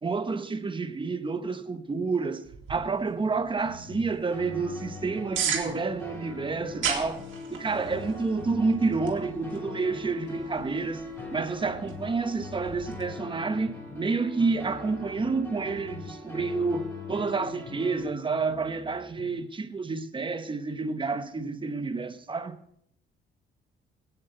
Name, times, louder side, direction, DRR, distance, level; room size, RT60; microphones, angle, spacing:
voice 1, 0.0-7.2 7.5-11.1 11.3-22.6, right 4 dB, 25° right, 1.0 m, -29 dB
sound 1, 2.5-13.0, right 7 dB, 75° right, 2.3 m, -38 dB
sound 2, 3.6-6.1 6.4-10.1 10.4-14.1 14.4-18.1 18.4-19.5, left 6 dB, 65° left, 2.9 m, -45 dB
sound 3, 4.3-18.0, left 3 dB, 15° left, 4.7 m, -42 dB
17.0 x 9.1 x 3.9 m
cardioid pair, 90°, 20 cm